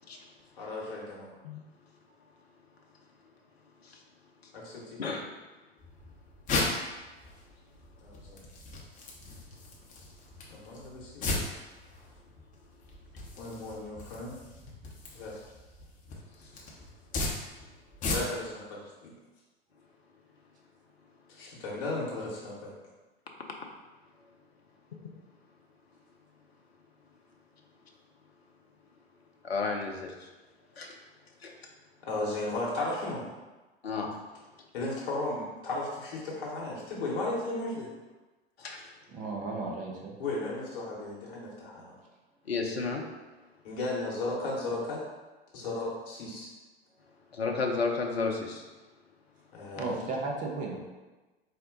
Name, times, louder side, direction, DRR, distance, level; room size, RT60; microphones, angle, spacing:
voice 1, 0.6-1.3 4.5-5.0 8.0-8.4 10.5-11.5 13.4-14.3 15.1-15.4 18.0-19.1 21.3-22.7 32.0-33.3 34.7-37.9 40.2-42.0 43.6-45.0 45.5-46.5 49.5-50.0, left 2 dB, 60° left, -5 dB, 1.1 m, -35 dB
sound 1, 5.8-18.6, left 2 dB, 25° left, 0.7 m, -37 dB
voice 2, 29.4-30.3 30.8-31.0 31.4-31.5 33.8-34.1 38.6-38.9 42.5-43.1 47.3-48.6, left 4 dB, 80° left, 1 dB, 0.6 m, -32 dB
voice 3, 39.1-40.2 49.7-50.8, right 3 dB, 25° right, -1 dB, 0.7 m, -35 dB
4.1 x 2.1 x 3.9 m, 1.2 s
figure-of-eight pair, 90°, 31 cm